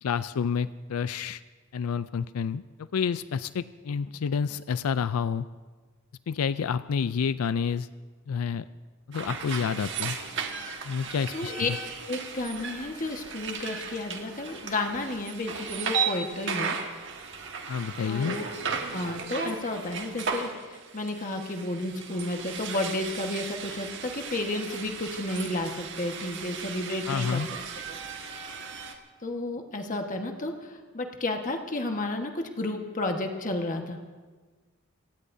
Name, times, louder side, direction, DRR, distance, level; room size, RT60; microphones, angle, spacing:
voice 1, 0.0-1.4 1.7-5.5 6.3-7.9 8.3-8.6 9.1-10.2 10.8-11.8 17.7-18.4 27.1-27.5, left 6 dB, 90° left, 14 dB, 0.4 m, -29 dB
sound 1, 9.1-28.9, right 5 dB, 60° right, 1.6 m, -36 dB
voice 2, 11.3-11.7 12.1-16.8 18.0-18.5 18.9-27.4 29.2-34.0, left 2 dB, 40° left, 3 dB, 1.4 m, -32 dB
26.5 x 18.0 x 2.7 m, 1.4 s
head